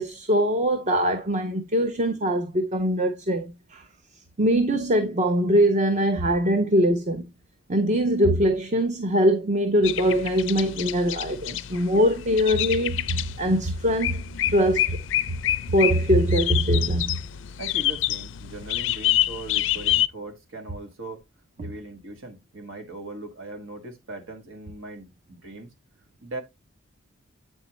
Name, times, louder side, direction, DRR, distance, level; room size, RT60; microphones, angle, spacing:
voice 1, 0.0-3.8 4.4-7.3 7.7-14.2 14.5-15.0 15.7-17.2, equal, 35° right, 0.5 m, -22 dB
sound 1, 9.8-20.1, left 13 dB, 65° left, 0.4 m, -28 dB
voice 2, 17.6-21.2 21.6-25.7 26.2-26.4, right 2 dB, 80° right, 1.6 m, -39 dB
8.6 x 4.3 x 3.0 m
head